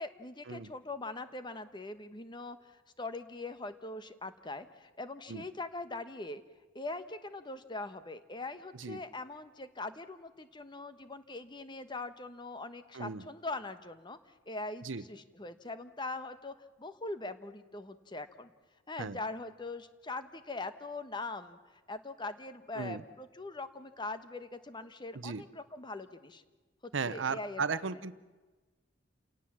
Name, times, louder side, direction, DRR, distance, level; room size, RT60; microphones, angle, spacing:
voice 1, 0.0-6.4 6.7-14.2 14.5-18.5 18.9-26.4 26.8-27.9, left 2 dB, 25° left, 11 dB, 1.1 m, -42 dB
voice 2, 12.9-13.2 14.8-15.0 19.0-19.2 22.8-23.0 25.1-25.4 26.9-28.1, right 5 dB, 80° right, 15 dB, 0.8 m, -36 dB
29.0 x 18.0 x 7.4 m, 1.3 s
head